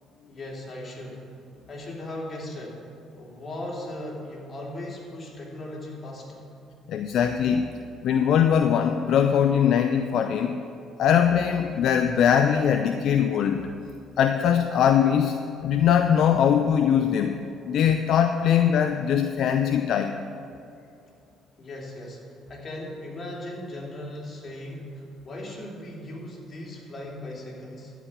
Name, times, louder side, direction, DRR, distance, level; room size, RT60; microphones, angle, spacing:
voice 1, 0.3-1.2 1.7-2.9 3.1-6.4 21.6-27.9, left 1 dB, 40° left, -2 dB, 3.1 m, -38 dB
voice 2, 6.9-7.6 8.0-10.5 11.0-13.7 14.2-15.4 15.6-17.3 17.7-20.2, left 8 dB, 65° left, 7 dB, 0.5 m, -21 dB
12.5 x 5.0 x 8.6 m, 2.6 s
hypercardioid pair, 60°, 0 cm